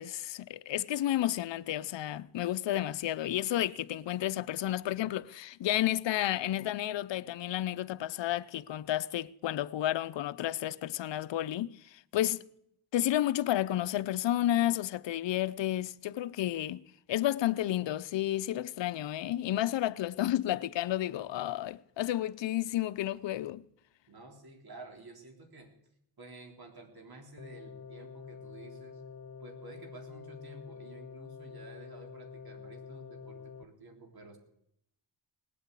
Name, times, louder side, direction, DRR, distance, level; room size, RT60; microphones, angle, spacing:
voice 1, 0.0-12.5 12.9-16.8 17.1-23.6, left 13 dB, 65° left, 0.7 m, -31 dB
voice 2, 24.1-25.7 26.2-29.0 29.4-34.4, right 2 dB, 50° right, 3.7 m, -51 dB
sound 1, 27.4-33.6, left 5 dB, 35° left, 1.1 m, -47 dB
19.0 x 8.6 x 8.3 m
cardioid pair, 75°, 46 cm